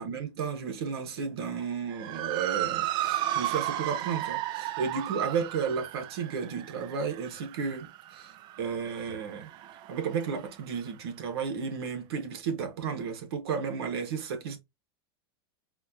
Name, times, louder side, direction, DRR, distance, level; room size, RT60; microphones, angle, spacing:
voice 1, 0.0-8.3 8.6-9.5 9.9-14.6, right 6 dB, 80° right, 1.3 m, -33 dB
Motor vehicle (road) / Siren, 1.9-10.5, right 13 dB, 35° right, 0.4 m, -34 dB
4.3 x 2.3 x 2.7 m
supercardioid pair, 145°, 13 cm